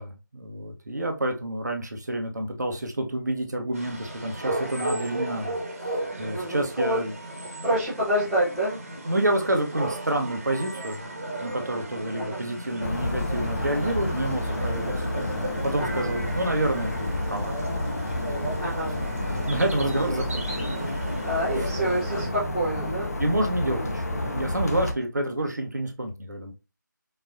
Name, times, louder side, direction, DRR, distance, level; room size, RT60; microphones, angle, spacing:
voice 1, 0.0-5.6 5.8-5.9 6.2-7.1 9.0-11.0 11.4-15.0 15.6-17.6 19.3-20.9 21.6-21.8 23.2-26.5, right 1 dB, 60° right, 3 dB, 1.2 m, -29 dB
sound 1, 3.7-22.3, right 1 dB, 45° right, 1.5 m, -35 dB
voice 2, 6.3-7.0 7.6-8.8 12.2-12.4 15.8-16.1 18.6-18.9 20.1-20.2 21.2-23.1, right 1 dB, ahead, -13 dB, 0.7 m, -27 dB
sound 2, 12.8-24.9, left 1 dB, 50° left, 0.8 m, -30 dB
4.6 x 4.1 x 2.6 m, 0.29 s
figure-of-eight pair, 160°, 11 cm